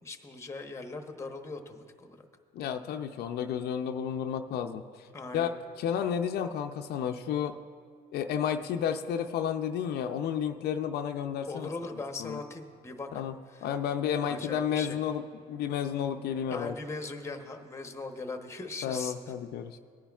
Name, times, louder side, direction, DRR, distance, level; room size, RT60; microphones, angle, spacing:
voice 1, 0.0-2.3 5.1-5.5 11.5-13.1 13.5-13.7 14.2-15.0 16.5-19.1, left 3 dB, 15° left, 5 dB, 0.9 m, -39 dB
voice 2, 2.5-5.1 5.3-5.5 5.8-7.6 8.1-11.7 12.2-12.4 13.1-16.8 18.8-19.8, left 8 dB, 70° left, 6 dB, 0.5 m, -32 dB
19.5 x 10.0 x 2.4 m, 2.2 s
cardioid pair, 110°, 17 cm